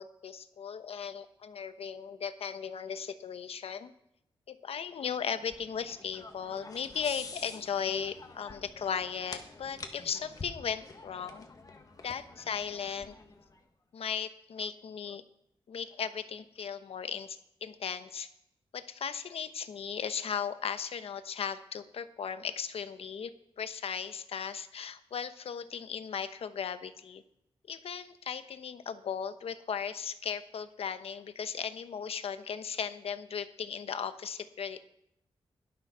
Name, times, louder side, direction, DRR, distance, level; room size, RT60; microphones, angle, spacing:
voice 1, 0.0-3.9 4.5-11.5 12.0-13.2 13.9-15.2 15.7-18.3 18.7-27.2 27.7-34.9, left 7 dB, 90° left, 11 dB, 1.0 m, -37 dB
sound 1, 5.0-13.6, left 3 dB, 40° left, 1.6 m, -48 dB
16.5 x 12.0 x 6.2 m, 0.79 s
wide cardioid pair, 165°, 10 cm